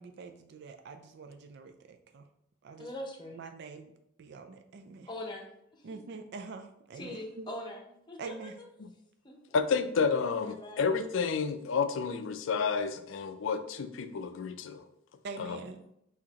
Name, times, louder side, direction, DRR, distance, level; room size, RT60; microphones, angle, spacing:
voice 1, 0.0-2.3 2.6-2.9 3.3-3.9 4.2-5.1 5.8-7.5 8.2-8.6 15.2-15.8, right 4 dB, 60° right, 6 dB, 0.4 m, -45 dB
voice 2, 2.8-3.4 5.1-5.5 5.7-6.0 7.0-8.7 9.2-9.4 10.4-10.9, left 1 dB, 25° left, 2 dB, 0.7 m, -42 dB
voice 3, 9.5-14.8 15.4-15.6, left 5 dB, 80° left, 10 dB, 0.4 m, -30 dB
6.2 x 2.8 x 2.8 m, 0.77 s
head